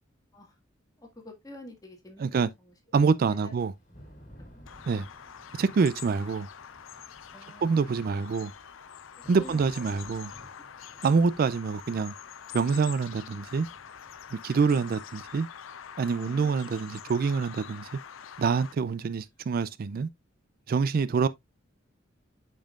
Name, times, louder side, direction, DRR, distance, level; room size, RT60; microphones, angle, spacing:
voice 1, 1.0-2.8 3.4-3.6 4.7-4.8 5.5-5.6 7.3-8.2 9.3-10.4 14.5-15.0 16.2-16.6, left 1 dB, 20° left, 1.8 m, -49 dB
voice 2, 2.9-3.7 4.9-5.1 5.6-6.5 7.6-8.5 9.3-10.3 11.0-12.1 12.5-13.7 14.3-15.5 16.0-17.9 18.4-20.1 20.7-21.3, right 5 dB, 50° right, 0.3 m, -26 dB
Thunder / Rain, 3.5-19.2, equal, 40° left, 2.6 m, -57 dB
Bird vocalization bird call bird song, 4.6-18.7, left 8 dB, 80° left, 0.5 m, -45 dB
8.8 x 5.4 x 2.4 m
head